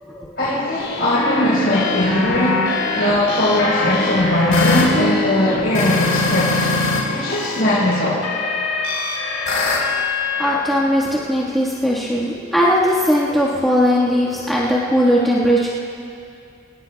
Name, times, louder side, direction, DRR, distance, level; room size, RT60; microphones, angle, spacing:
voice 1, 0.4-2.7 3.0-6.6 7.1-8.2, left 1 dB, 50° left, -10 dB, 4.4 m, -20 dB
sound 1, 0.8-7.0 7.3-10.6, left 3 dB, 75° left, 4.0 m, -21 dB
voice 2, 10.4-15.7, equal, ahead, -10 dB, 1.6 m, -18 dB
26.5 x 18.5 x 2.3 m, 2.5 s
head